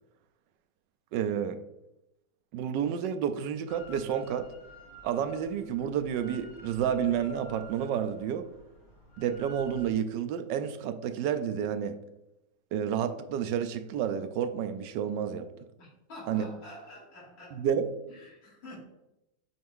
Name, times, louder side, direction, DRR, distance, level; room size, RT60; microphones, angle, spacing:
voice 1, 1.1-1.6 2.5-4.5 5.0-8.4 9.2-12.0 12.7-15.5 16.3-16.4 17.5-17.9, right 8 dB, 75° right, 9 dB, 1.1 m, -30 dB
Drill, 3.7-9.9, equal, 55° left, 2.1 m, -51 dB
voice 2, 15.8-17.7 18.1-18.8, left 1 dB, 80° left, -6 dB, 3.3 m, -48 dB
7.8 x 3.4 x 3.6 m, 0.90 s
omnidirectional pair, 2.1 m